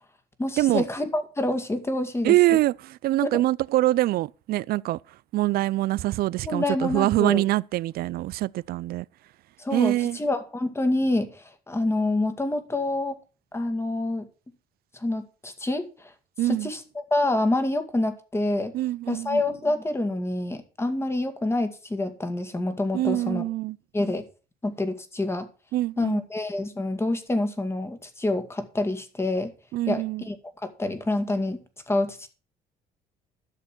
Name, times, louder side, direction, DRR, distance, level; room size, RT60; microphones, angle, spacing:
voice 1, 0.4-2.3 3.2-3.4 6.4-7.4 9.6-13.2 13.5-14.3 14.9-16.1 16.5-18.7 19.1-23.4 23.9-24.2 24.6-25.5 26.0-29.5 29.9-30.4 30.6-32.3, left 2 dB, 15° left, 2.1 m, -27 dB
voice 2, 2.2-9.1 9.7-10.2 16.4-16.7 18.7-19.4 22.9-23.8 25.7-26.2 29.7-30.3, right 16 dB, 65° right, 0.4 m, -24 dB
12.5 x 6.8 x 6.0 m
cardioid pair, 110°, 17 cm